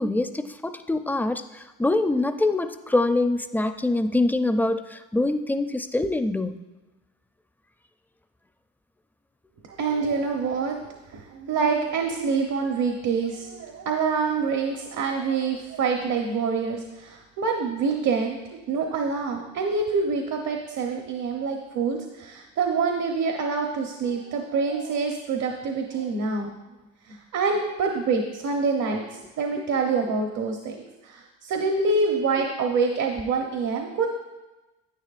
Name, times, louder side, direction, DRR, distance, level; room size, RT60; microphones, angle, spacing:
voice 1, 0.0-6.6 29.6-29.7, left 2 dB, 5° left, 9 dB, 0.4 m, -24 dB
voice 2, 9.7-10.8 11.1-18.4 18.7-26.5 27.0-29.0 29.4-34.1, right 4 dB, 70° right, 3 dB, 1.0 m, -26 dB
10.5 x 9.0 x 2.5 m, 1.1 s
cardioid pair, 90°, 30 cm